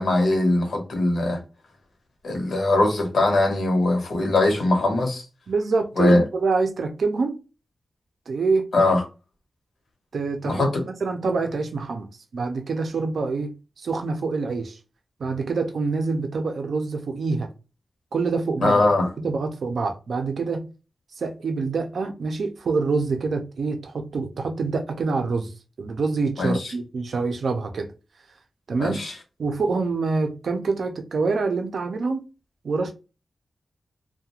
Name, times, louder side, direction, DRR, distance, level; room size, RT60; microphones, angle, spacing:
voice 1, 0.0-1.4 2.2-5.2 6.0-6.2 8.7-9.0 10.4-10.8 18.6-19.1 26.4-26.6 28.8-29.1, left 2 dB, 80° left, 0.9 m, -21 dB
voice 2, 5.5-7.4 8.3-8.7 10.1-10.7 11.0-12.1 12.3-14.8 15.2-17.5 18.1-18.8 19.2-20.7 21.2-27.9 28.7-29.0 29.4-32.3 32.6-32.9, right 4 dB, 65° right, 0.4 m, -26 dB
2.4 x 2.1 x 2.8 m
wide cardioid pair, 145°, 0 cm